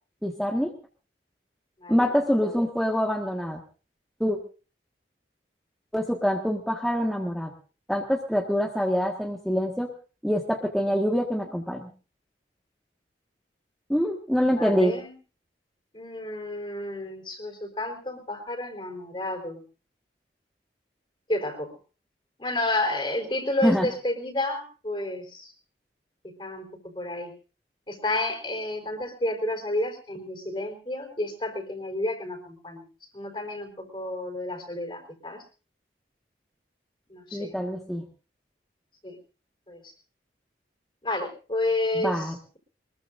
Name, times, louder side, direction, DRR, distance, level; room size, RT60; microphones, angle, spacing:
voice 1, 0.2-0.7 1.9-3.6 4.2-4.4 5.9-7.5 7.9-9.9 10.2-11.9 13.9-14.9 23.6-23.9 37.3-38.0 41.9-42.4, equal, ahead, -1 dB, 1.7 m, -25 dB
voice 2, 14.5-15.1 15.9-19.6 21.3-21.7 22.4-25.5 26.4-26.7 26.9-27.3 27.9-32.8 33.1-35.4 37.1-37.5 39.0-39.2 39.7-39.8 41.0-42.6, left 1 dB, 30° left, 4 dB, 4.3 m, -31 dB
23.5 x 21.0 x 2.6 m, 0.36 s
head